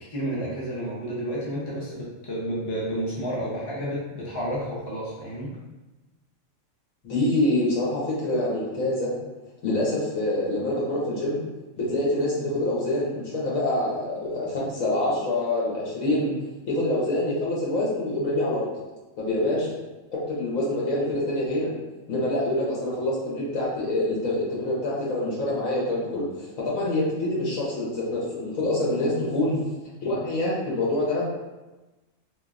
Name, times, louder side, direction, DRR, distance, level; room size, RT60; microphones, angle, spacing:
voice 1, 0.1-5.5, equal, 25° left, -7 dB, 0.7 m, -31 dB
voice 2, 7.0-9.1 9.6-11.4 11.8-16.3 16.7-18.7 19.2-19.7 20.1-21.7 22.1-29.6 30.0-31.2, left 1 dB, 80° left, -6 dB, 1.4 m, -26 dB
3.3 x 3.1 x 2.5 m, 1.1 s
omnidirectional pair, 1.4 m